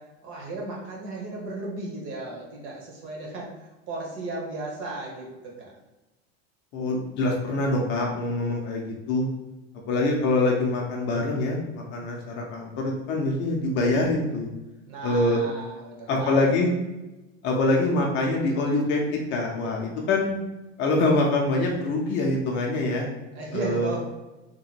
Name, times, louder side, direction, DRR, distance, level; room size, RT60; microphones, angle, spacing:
voice 1, 0.0-3.6 3.9-5.7 14.9-16.5 23.3-24.1, right 2 dB, 40° right, -2 dB, 1.1 m, -35 dB
voice 2, 6.7-9.2 9.9-14.5 15.0-15.4 16.1-16.7 17.4-20.3 20.8-23.1 23.5-23.9, left 2 dB, 35° left, 0 dB, 0.5 m, -24 dB
2.9 x 2.1 x 4.1 m, 1.0 s
supercardioid pair, 155°, 31 cm